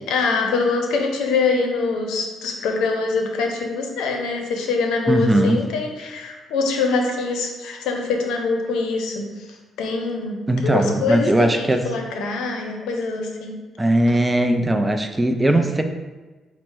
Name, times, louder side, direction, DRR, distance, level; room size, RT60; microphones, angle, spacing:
voice 1, 0.1-9.2 9.8-10.4 10.6-13.6, left 4 dB, 90° left, 3 dB, 0.6 m, -24 dB
voice 2, 5.1-5.6 10.5-11.8 13.8-15.8, right 1 dB, 15° right, 6 dB, 0.4 m, -19 dB
4.4 x 2.0 x 4.4 m, 1.2 s
cardioid pair, 90°, 0 cm